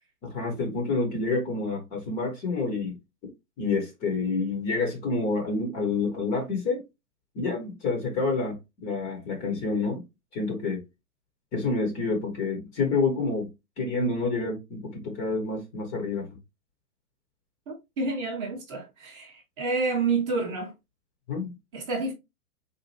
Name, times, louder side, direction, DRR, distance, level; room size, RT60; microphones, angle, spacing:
voice 1, 0.2-3.0 3.6-6.8 7.3-10.0 10.3-10.8 11.5-13.5 13.8-16.3 21.3-21.5, left 3 dB, 15° left, 0.6 m, -28 dB
voice 2, 17.7-20.7 21.7-22.1, right 3 dB, 20° right, 0.7 m, -29 dB
4.0 x 2.5 x 2.9 m
figure-of-eight pair, 115°, 45 cm